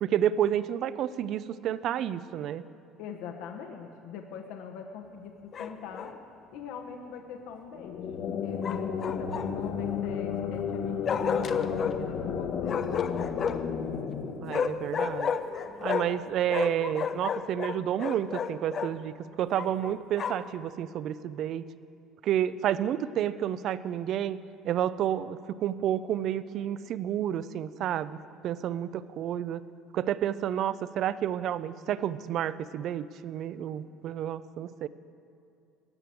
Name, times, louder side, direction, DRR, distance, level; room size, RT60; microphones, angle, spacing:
voice 1, 0.0-2.6 14.4-15.3 15.8-21.6 22.2-24.4 24.6-28.2 28.4-29.6 29.9-34.9, right 10 dB, 50° right, 16 dB, 0.4 m, -30 dB
voice 2, 3.0-6.1 6.5-8.0 8.4-12.8 14.0-14.4, left 7 dB, 75° left, 3 dB, 1.0 m, -43 dB
Bark, 5.5-6.2 8.6-9.7 11.1-12.0 12.6-13.7 14.5-16.2 16.5-18.9 19.6-20.5, left 7 dB, 35° left, 0.5 m, -32 dB
sound 1, 7.7-15.3, left 6 dB, 50° left, 1.0 m, -33 dB
13.0 x 6.8 x 9.1 m, 2.7 s
cardioid pair, 150°, 0 cm